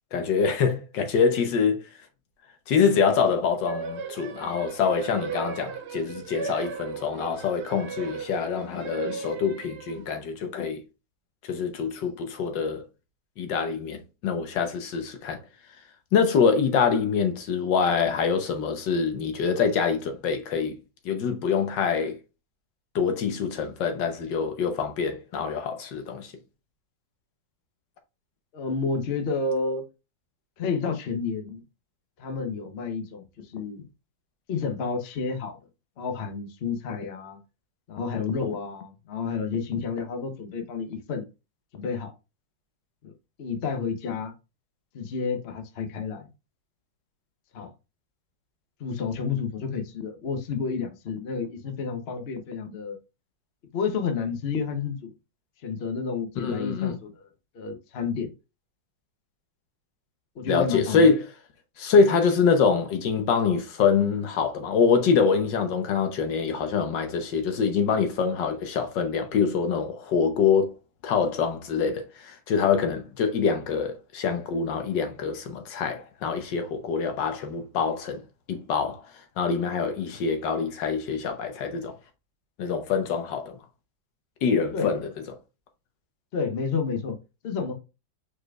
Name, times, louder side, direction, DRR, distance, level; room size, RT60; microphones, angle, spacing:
voice 1, 0.1-1.8 2.7-10.8 11.4-12.8 13.4-15.4 16.1-20.8 21.0-22.2 22.9-26.3 56.4-57.0 60.5-61.2 61.8-70.7 71.0-78.2 78.5-79.0 79.4-81.9 82.6-83.6 84.4-85.1, left 5 dB, 75° left, 1.5 m, -25 dB
sound 1, 3.7-10.2, right 5 dB, 75° right, 0.6 m, -37 dB
voice 2, 28.5-29.8 30.6-31.6 32.2-33.9 34.5-35.6 36.0-37.4 37.9-41.2 41.7-42.1 43.0-43.1 43.4-44.3 44.9-46.3 47.5-47.7 48.8-53.0 53.7-55.1 55.6-57.1 57.5-58.3 60.3-61.1 84.7-84.9 86.3-87.2 87.4-87.7, left 5 dB, 50° left, 0.8 m, -30 dB
5.0 x 4.3 x 2.4 m
omnidirectional pair, 2.0 m